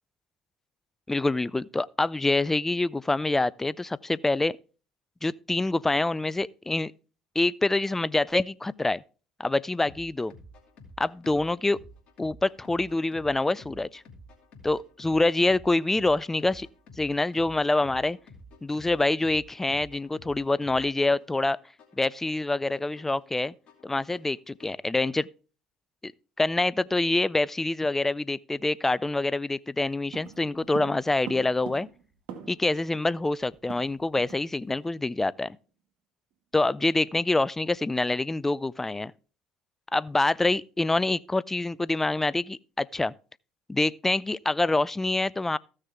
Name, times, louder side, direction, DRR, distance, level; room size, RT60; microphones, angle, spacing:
voice 1, 1.1-4.6 5.2-6.9 7.4-9.0 9.4-10.3 11.0-11.8 12.2-14.0 14.6-16.7 17.0-18.2 18.6-21.6 22.0-23.5 23.8-25.3 26.0-26.1 26.4-31.9 32.5-35.6 36.5-39.1 39.9-43.1 43.7-45.6, left 2 dB, 15° left, 0.4 m, -26 dB
sound 1, 9.8-24.8, left 1 dB, 50° left, 2.4 m, -51 dB
sound 2, 30.1-32.8 33.1-33.2 33.4-34.4 34.7-34.9 35.3-35.5, right 8 dB, 65° right, 1.7 m, -43 dB
15.0 x 6.5 x 3.5 m
hypercardioid pair, 65°, 2 cm